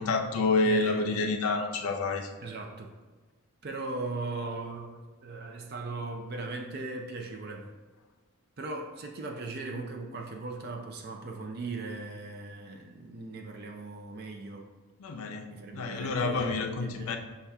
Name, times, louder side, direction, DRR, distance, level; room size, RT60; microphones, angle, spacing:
voice 1, 0.0-2.4 15.0-15.5 15.7-17.2, left 3 dB, 85° left, 4 dB, 0.5 m, -28 dB
voice 2, 0.6-1.3 2.4-2.9 3.6-7.7 8.6-14.6 15.5-17.2, right 3 dB, 45° right, 2 dB, 0.4 m, -38 dB
5.6 x 2.3 x 3.4 m, 1.3 s
head